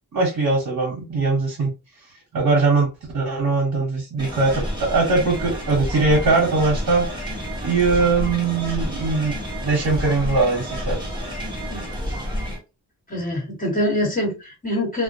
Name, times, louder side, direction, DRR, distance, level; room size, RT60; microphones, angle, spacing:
voice 1, 0.1-1.7 2.3-2.9 3.1-7.1 7.6-9.4 9.6-11.0, right 3 dB, 55° right, 1.0 m, -21 dB
sound 1, 4.2-12.6, equal, 10° right, 1.0 m, -29 dB
voice 2, 13.1-15.0, left 1 dB, 20° left, 1.3 m, -24 dB
2.2 x 2.1 x 2.6 m
wide cardioid pair, 90°, 39 cm